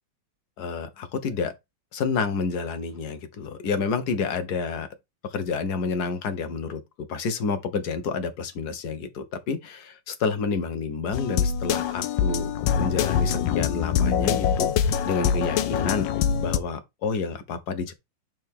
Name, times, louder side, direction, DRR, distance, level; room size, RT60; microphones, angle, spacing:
voice 1, 0.6-1.5 1.9-4.9 5.2-6.8 7.1-12.5 12.8-17.9, left 5 dB, 60° left, 1.6 m, -29 dB
sound 1, 11.1-16.6, left 8 dB, 80° left, 1.3 m, -24 dB
6.2 x 4.6 x 3.6 m
omnidirectional pair, 2.1 m